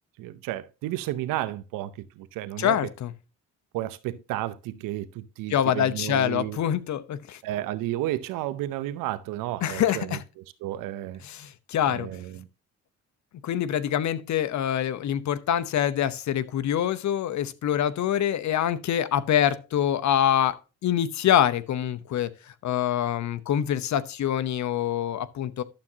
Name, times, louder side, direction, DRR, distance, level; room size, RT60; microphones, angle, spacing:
voice 1, 0.2-2.8 3.7-6.6 7.4-10.2 10.6-11.2 11.9-12.5, right 14 dB, 85° right, 0.7 m, -32 dB
voice 2, 2.6-3.1 5.5-7.4 9.6-10.2 11.2-12.1 13.4-25.6, left 10 dB, 60° left, 0.9 m, -25 dB
11.5 x 7.2 x 2.8 m
cardioid pair, 80°, 32 cm